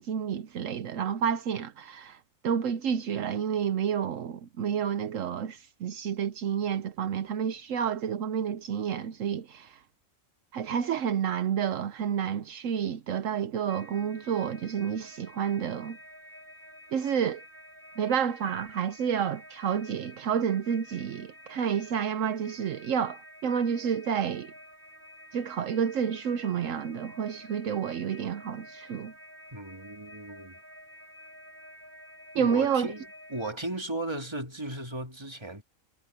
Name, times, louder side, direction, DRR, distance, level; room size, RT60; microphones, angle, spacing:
voice 1, 0.0-2.2 2.4-9.8 10.5-16.0 16.9-17.4 18.0-24.5 25.3-29.1 32.3-32.9, right 8 dB, 75° right, 1.1 m, -30 dB
sound 1, 13.7-33.5, equal, 40° right, 6.1 m, -50 dB
voice 2, 29.5-30.6 32.3-35.6, right 1 dB, 20° right, 2.3 m, -36 dB
omnidirectional pair, 1.4 m